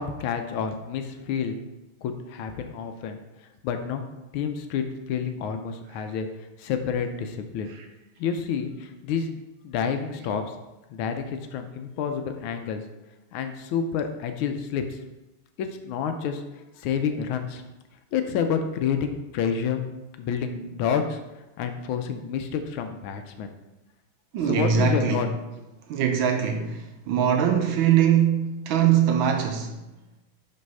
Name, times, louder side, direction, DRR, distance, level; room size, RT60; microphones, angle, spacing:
voice 1, 0.0-1.6 2.0-4.1 4.3-7.7 8.2-10.4 10.9-12.8 13.3-15.0 15.6-17.6 18.1-19.8 20.2-23.5 24.4-25.3, left 7 dB, 75° left, 1.3 m, -29 dB
voice 2, 24.3-25.3 25.9-29.8, right 8 dB, 75° right, 1.3 m, -22 dB
5.4 x 3.4 x 5.3 m
omnidirectional pair, 2.4 m